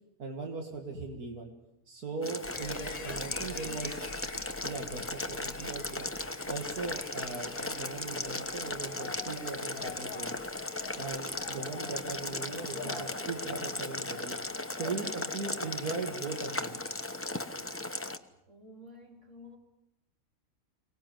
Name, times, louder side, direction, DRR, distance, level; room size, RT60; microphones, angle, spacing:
voice 1, 0.2-1.5 1.9-3.9 4.6-6.1 6.5-10.4 10.9-14.4 14.7-16.8, right 4 dB, 80° right, 3 dB, 2.7 m, -39 dB
Boiling, 2.2-18.2, left 2 dB, 10° left, 0.8 m, -37 dB
sound 1, 2.4-13.2 13.5-13.6, left 4 dB, 30° left, 1.2 m, -49 dB
voice 2, 3.1-3.9 12.7-13.3 14.8-15.1 17.3-19.6, equal, 50° right, 3 dB, 4.2 m, -49 dB
sound 2, 8.9-16.8, left 7 dB, 70° left, 1.5 m, -48 dB
23.5 x 19.5 x 9.2 m, 0.85 s
omnidirectional pair, 1.6 m